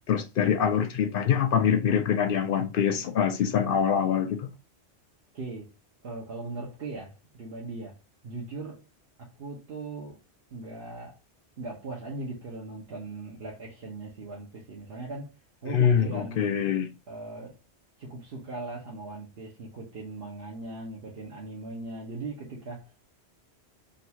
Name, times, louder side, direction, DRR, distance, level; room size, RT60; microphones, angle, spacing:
voice 1, 0.0-4.5 15.7-16.9, left 8 dB, 60° left, 0.7 m, -24 dB
voice 2, 5.3-5.7 6.0-8.0 8.2-8.8 9.2-10.2 10.5-11.2 11.6-15.3 15.6-16.4 17.1-17.6 18.0-23.1, right 3 dB, 60° right, 1.1 m, -39 dB
3.9 x 2.3 x 2.8 m
omnidirectional pair, 1.1 m